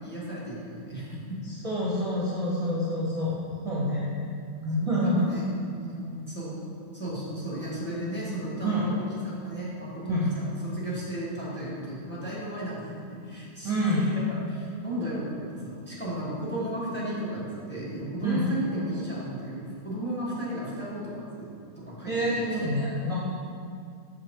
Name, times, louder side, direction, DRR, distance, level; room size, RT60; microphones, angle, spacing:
voice 1, 0.0-1.4 4.8-5.4 5.8-6.6 6.9-21.5 21.8-22.4, right 1 dB, 10° left, -6 dB, 1.5 m, -34 dB
voice 2, 1.6-3.4 3.6-4.0 4.6-5.2 8.6-8.9 10.1-10.3 13.6-14.1 18.2-18.4 22.1-23.2, equal, 30° right, -8 dB, 0.9 m, -27 dB
6.3 x 5.6 x 3.7 m, 2.3 s
omnidirectional pair, 1.3 m